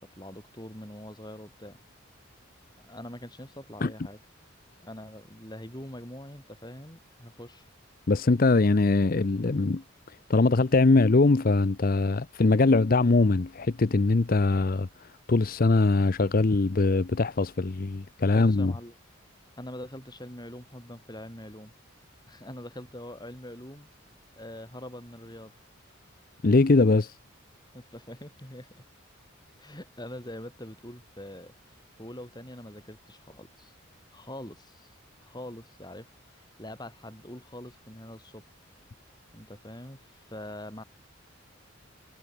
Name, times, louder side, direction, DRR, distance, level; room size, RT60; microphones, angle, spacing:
voice 1, 0.0-1.8 2.8-4.2 4.8-7.7 18.3-18.9 19.6-21.7 22.3-23.9 24.4-25.5 27.7-28.8 29.6-31.5 32.0-33.7 34.1-35.0 35.2-38.4 39.3-40.8, left 1 dB, 20° left, 7.2 m, -43 dB
voice 2, 8.1-18.7 26.4-27.1, left 3 dB, 45° left, 0.6 m, -22 dB
head